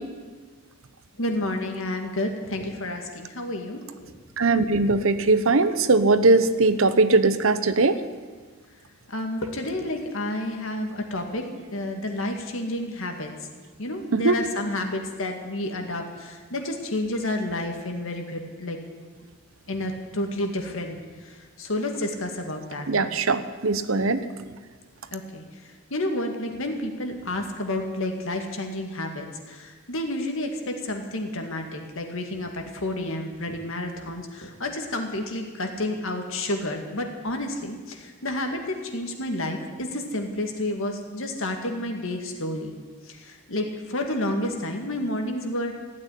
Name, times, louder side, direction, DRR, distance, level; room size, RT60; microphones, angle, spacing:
voice 1, 1.2-4.1 9.1-11.4 11.7-13.3 13.8-18.8 19.7-21.0 21.2-22.9 25.1-25.4 25.9-42.8 43.1-45.7, left 1 dB, 65° left, 4 dB, 2.1 m, -30 dB
voice 2, 4.4-8.0 14.1-14.4 22.9-24.2, right 3 dB, 65° right, 12 dB, 0.9 m, -20 dB
15.5 x 9.0 x 10.0 m, 1.4 s
head